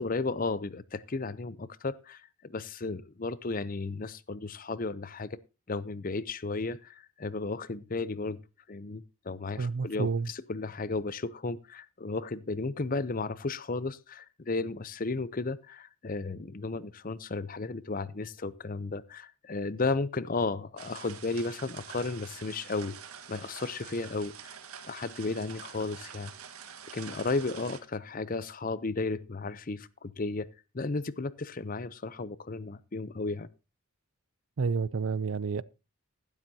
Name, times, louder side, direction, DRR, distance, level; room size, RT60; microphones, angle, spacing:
voice 1, 0.0-5.4 5.7-8.4 8.7-23.0 23.3-24.5 24.9-26.3 26.9-30.5 30.7-33.5, left 3 dB, 40° left, 0.6 m, -34 dB
voice 2, 9.6-10.3 34.6-35.6, right 4 dB, 65° right, 0.5 m, -29 dB
sound 1, 20.8-27.8, right 7 dB, 85° right, 1.6 m, -46 dB
15.0 x 12.5 x 2.8 m
head